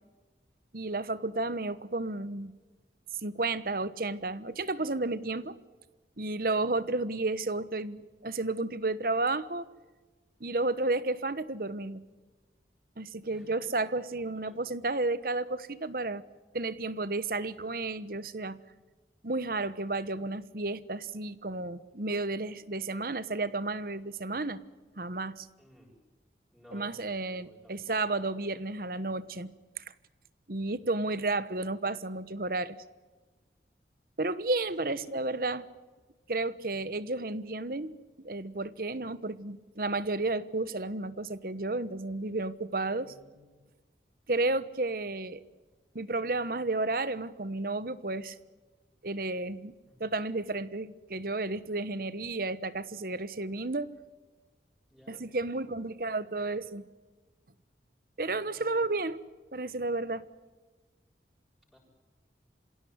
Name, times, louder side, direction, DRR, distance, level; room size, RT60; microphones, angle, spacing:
voice 1, 0.7-2.5 3.2-5.6 6.2-9.7 10.4-12.0 13.0-16.2 16.5-18.6 19.2-24.6 25.0-25.5 26.7-29.8 30.5-32.8 34.2-35.6 36.3-37.9 38.2-43.1 44.3-45.4 45.9-48.4 49.0-49.7 50.0-53.9 55.1-56.8 58.2-59.2 59.5-60.2, right 2 dB, 55° right, 16 dB, 1.2 m, -32 dB
voice 2, 25.6-25.9 26.5-28.0 30.7-30.8 34.8-35.0 42.9-43.4 49.9-50.1 54.9-55.2 58.5-58.6 61.7-61.8, equal, ahead, -7 dB, 7.8 m, -57 dB
27.0 x 17.0 x 9.7 m, 1.3 s
head